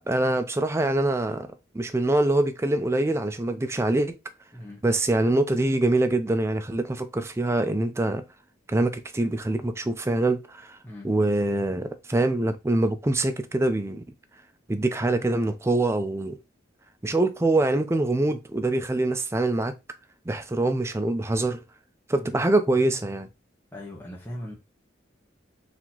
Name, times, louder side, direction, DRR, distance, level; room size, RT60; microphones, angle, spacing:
voice 1, 0.1-1.5 1.7-4.2 4.8-8.2 8.7-10.8 11.0-14.0 14.7-16.4 17.0-19.7 20.3-21.6 22.1-23.3, right 2 dB, 15° right, 0.4 m, -24 dB
voice 2, 23.7-24.5, left 1 dB, 10° left, 1.0 m, -39 dB
4.1 x 2.8 x 2.9 m
head